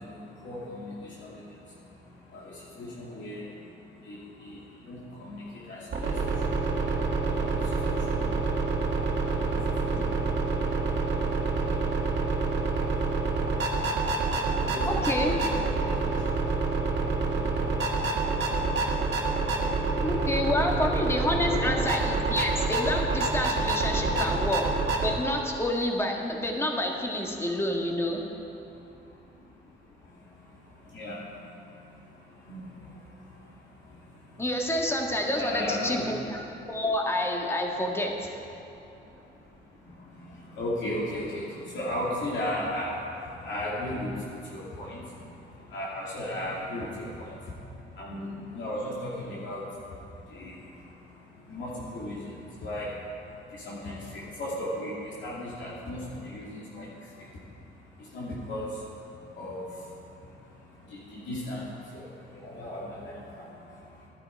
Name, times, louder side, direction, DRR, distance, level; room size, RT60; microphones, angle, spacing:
voice 1, 0.0-20.5 21.3-22.0 22.8-22.9 24.0-24.3 26.6-26.7 27.4-27.6 28.2-34.5 35.3-36.1 36.4-36.7 38.5-64.1, left 1 dB, 70° left, -7 dB, 2.7 m, -39 dB
sound 1, 5.9-25.1, right 3 dB, 60° right, 1.9 m, -27 dB
voice 2, 14.9-15.4 20.0-24.6 25.0-28.2 34.4-38.4, left 1 dB, 10° left, 1 dB, 1.7 m, -29 dB
12.5 x 11.5 x 4.7 m, 3.0 s
cardioid pair, 90°, 20 cm